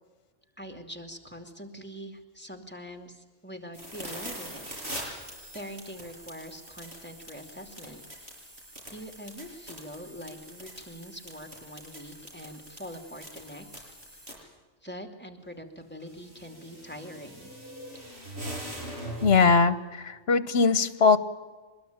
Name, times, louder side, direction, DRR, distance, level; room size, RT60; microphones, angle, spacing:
voice 1, 0.6-8.0 8.9-14.0 14.8-17.5, equal, 10° left, 4 dB, 2.5 m, -44 dB
sound 1, 3.7-14.3 15.8-19.5, right 1 dB, 60° right, 6.5 m, -42 dB
voice 2, 19.2-21.2, left 5 dB, 60° left, 13 dB, 1.3 m, -21 dB
24.0 x 21.0 x 8.9 m, 1.4 s
omnidirectional pair, 1.2 m